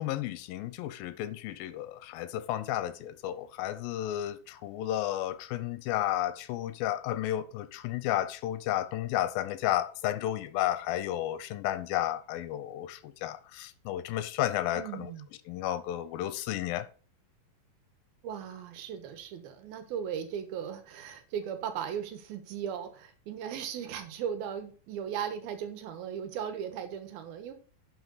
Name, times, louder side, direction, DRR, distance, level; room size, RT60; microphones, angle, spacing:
voice 1, 0.0-15.1 15.5-16.9, left 13 dB, 80° left, 2.5 m, -32 dB
voice 2, 14.7-15.3 18.2-27.5, right 8 dB, 85° right, 3.0 m, -37 dB
10.5 x 5.7 x 4.0 m
omnidirectional pair, 4.2 m